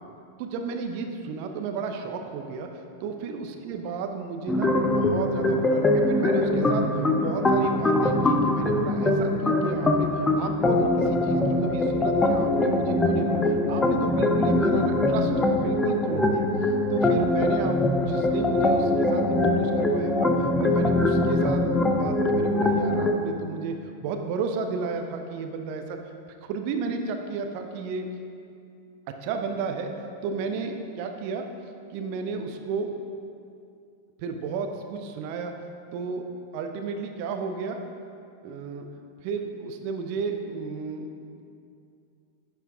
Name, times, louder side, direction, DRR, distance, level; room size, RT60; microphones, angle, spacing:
voice 1, 0.4-15.3 15.6-26.0 26.4-28.1 29.1-29.9 30.2-31.5 31.9-32.9 34.2-35.6 35.9-36.3 36.5-37.8 38.4-38.9 39.2-41.4, right 5 dB, 45° right, 5 dB, 0.7 m, -33 dB
sound 1, 4.5-23.1, left 2 dB, 15° left, 0.6 m, -23 dB
10.5 x 4.6 x 3.6 m, 2.5 s
figure-of-eight pair, 90°, 0 cm